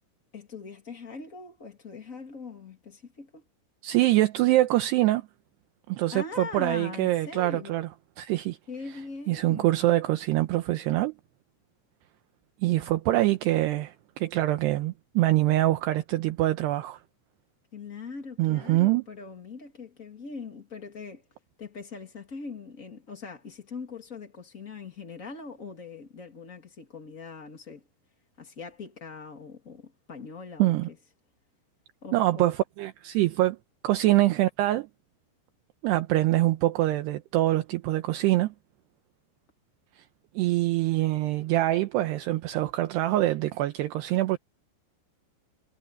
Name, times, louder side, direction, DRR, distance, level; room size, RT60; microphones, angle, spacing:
voice 1, 0.3-3.4 6.1-7.8 8.7-9.9 17.7-21.3 21.6-27.9 28.4-31.0 32.0-32.5, left 4 dB, 65° left, 0.8 m, -41 dB
voice 2, 3.8-5.2 5.9-7.9 8.2-8.6 9.3-11.1 12.6-17.0 18.4-19.0 30.6-30.9 32.1-33.6 33.8-34.9 35.8-38.5 40.0-40.1 40.4-44.4, right 16 dB, 75° right, 2.6 m, -24 dB
omnidirectional pair, 5.6 m